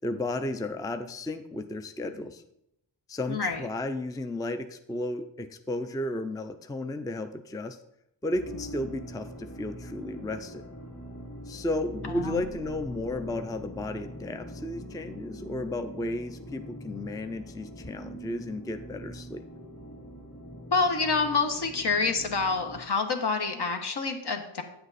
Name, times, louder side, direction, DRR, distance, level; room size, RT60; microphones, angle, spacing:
voice 1, 0.0-2.4 3.1-7.8 8.2-10.7 11.5-19.4, left 1 dB, 10° left, 9 dB, 0.4 m, -33 dB
voice 2, 3.3-3.6 12.1-12.4 20.7-24.6, left 4 dB, 60° left, 5 dB, 1.3 m, -27 dB
sound 1, 8.3-22.8, equal, 35° left, 2.3 m, -43 dB
9.1 x 7.9 x 4.1 m, 0.81 s
wide cardioid pair, 85°, 45 cm